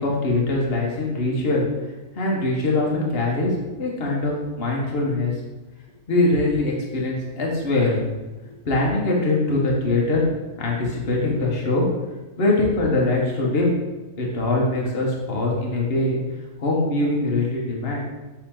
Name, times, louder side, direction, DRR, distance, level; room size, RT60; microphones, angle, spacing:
voice 1, 0.0-1.6 2.1-3.5 3.8-5.3 6.1-8.0 8.4-10.2 10.6-11.8 12.4-13.7 14.2-16.2 16.6-18.0, left 2 dB, 45° left, -2 dB, 1.7 m, -22 dB
7.6 x 5.7 x 3.9 m, 1.2 s
omnidirectional pair, 1.5 m